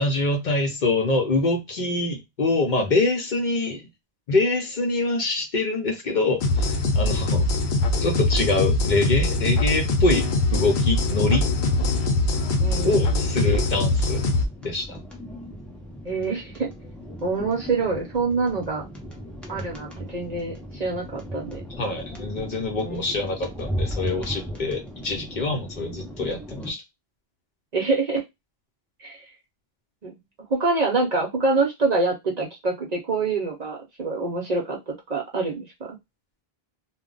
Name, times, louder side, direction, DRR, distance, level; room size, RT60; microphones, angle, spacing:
voice 1, 0.0-3.8 4.3-7.5 8.0-11.5 12.8-14.2 14.6-15.0 21.8-26.8, left 2 dB, 55° left, 3 dB, 0.7 m, -25 dB
sound 1, 6.4-14.5, left 2 dB, 85° left, 0.9 m, -22 dB
sound 2, 11.1-26.7, equal, ahead, 0.5 m, -37 dB
voice 2, 12.6-13.2 16.0-16.7 17.2-18.9 19.5-21.6 22.8-23.1 27.7-28.2 29.0-29.2 30.0-30.1 30.5-35.9, right 3 dB, 45° right, 0 dB, 0.7 m, -26 dB
2.2 x 2.0 x 3.7 m, 0.21 s
omnidirectional pair, 1.0 m